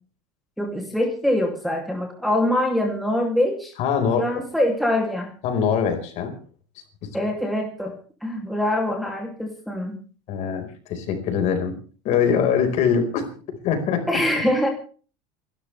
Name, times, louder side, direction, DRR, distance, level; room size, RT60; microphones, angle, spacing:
voice 1, 0.6-3.7 4.2-5.3 7.1-7.9 8.2-10.0 14.1-14.7, left 1 dB, ahead, 0 dB, 2.8 m, -24 dB
voice 2, 3.8-4.4 5.4-6.3 7.0-7.1 10.3-11.7 12.0-14.1, left 7 dB, 45° left, 6 dB, 5.0 m, -23 dB
28.5 x 12.5 x 3.4 m, 0.40 s
cardioid pair, 155°, 16 cm